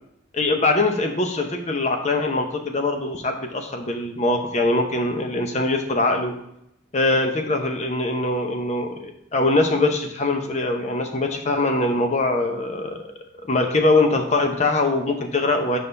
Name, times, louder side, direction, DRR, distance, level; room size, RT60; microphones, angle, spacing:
voice 1, 0.3-6.3 6.9-13.0 13.5-15.8, left 2 dB, 35° left, 5 dB, 0.7 m, -22 dB
6.4 x 5.4 x 3.3 m, 0.79 s
head